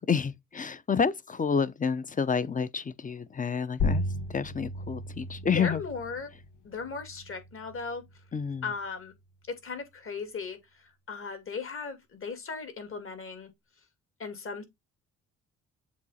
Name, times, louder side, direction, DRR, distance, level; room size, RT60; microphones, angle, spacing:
voice 1, 0.1-5.8 8.3-8.7, left 6 dB, 25° left, 0.7 m, -29 dB
sound 1, 3.8-8.9, left 2 dB, 85° left, 1.4 m, -35 dB
voice 2, 5.6-6.3 6.6-8.0 8.6-9.1 9.5-13.5 14.2-14.6, left 5 dB, 45° left, 2.4 m, -37 dB
7.3 x 3.1 x 4.1 m
cardioid pair, 90°, 30 cm